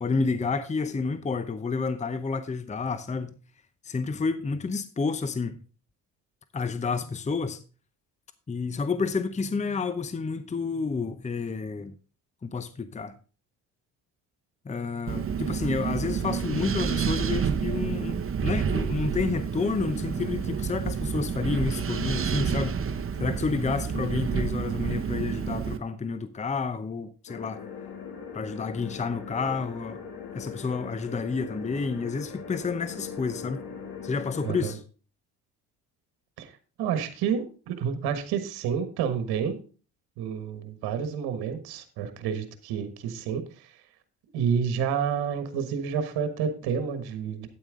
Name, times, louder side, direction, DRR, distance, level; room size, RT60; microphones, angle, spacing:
voice 1, 0.0-3.4 3.8-5.6 6.5-7.6 8.5-11.9 12.4-13.2 14.6-22.8 23.2-27.6 28.3-30.0 30.3-33.6 34.0-34.8, left 4 dB, 20° left, 0.8 m, -30 dB
Wind, 15.1-25.8, right 6 dB, 35° right, 1.1 m, -29 dB
sound 1, 27.3-34.7, left 6 dB, 65° left, 2.4 m, -40 dB
voice 2, 34.4-34.7 36.4-36.5 36.8-39.6 40.2-43.7 44.3-47.5, right 7 dB, 75° right, 1.4 m, -29 dB
8.9 x 8.9 x 3.7 m
supercardioid pair, 65°, 39 cm